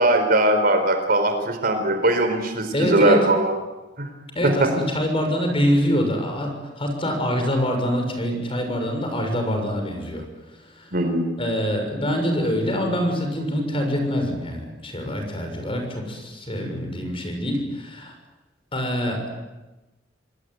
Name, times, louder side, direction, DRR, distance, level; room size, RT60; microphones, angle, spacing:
voice 1, 0.0-3.6 4.0-4.1 4.4-4.7 10.9-11.3, right 1 dB, 55° right, 7 dB, 4.3 m, -20 dB
voice 2, 2.7-3.2 4.3-10.2 10.8-10.9 11.4-18.1 18.7-19.2, equal, 30° left, 4 dB, 6.6 m, -25 dB
27.5 x 19.5 x 9.5 m, 1.1 s
head